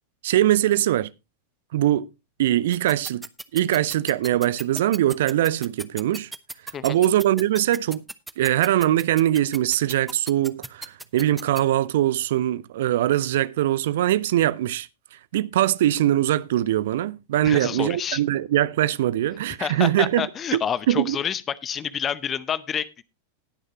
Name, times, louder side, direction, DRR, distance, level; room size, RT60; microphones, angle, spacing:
voice 1, 0.2-1.1 1.7-2.1 2.4-3.3 3.5-6.3 6.8-8.0 8.4-14.9 15.3-20.3 20.5-20.6 20.9-21.2, right 13 dB, 55° right, 0.5 m, -22 dB
sound 1, 2.7-11.6, right 2 dB, 5° right, 0.7 m, -35 dB
voice 2, 17.4-18.2 19.6-23.0, left 8 dB, 25° left, 0.7 m, -28 dB
19.5 x 6.5 x 2.9 m
figure-of-eight pair, 90°, 0 cm